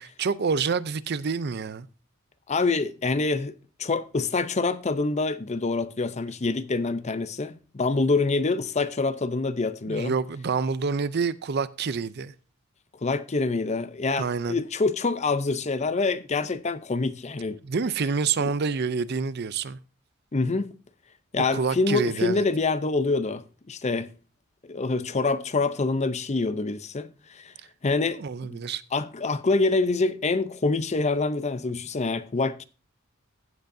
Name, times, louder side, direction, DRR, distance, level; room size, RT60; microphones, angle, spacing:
voice 1, 0.0-1.9 9.9-12.3 14.2-14.6 17.6-19.8 21.5-22.4 28.1-28.8, right 5 dB, 50° right, 0.5 m, -27 dB
voice 2, 2.5-10.1 13.0-17.6 18.4-18.5 20.3-20.7 21.3-24.1 24.6-27.5 27.8-28.2 28.5-28.6 28.9-32.6, left 3 dB, 35° left, 0.6 m, -26 dB
15.5 x 7.9 x 2.6 m
head